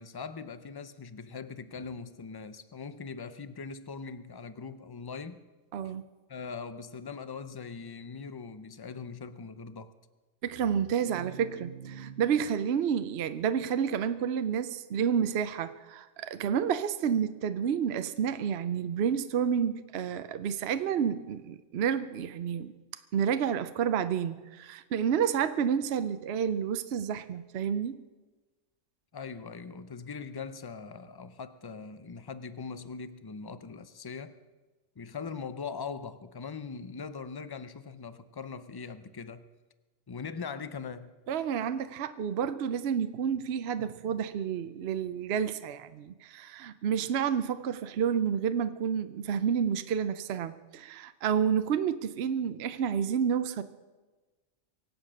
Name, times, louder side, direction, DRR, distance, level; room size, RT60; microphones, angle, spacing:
voice 1, 0.0-5.4 6.3-9.9 29.1-34.4 35.0-39.5 40.1-41.1, left 5 dB, 30° left, 0.4 m, -41 dB
voice 2, 5.7-6.0 10.4-22.7 23.1-28.0 41.3-53.6, right 8 dB, 60° right, 0.8 m, -30 dB
24.0 x 8.1 x 6.3 m
omnidirectional pair, 1.3 m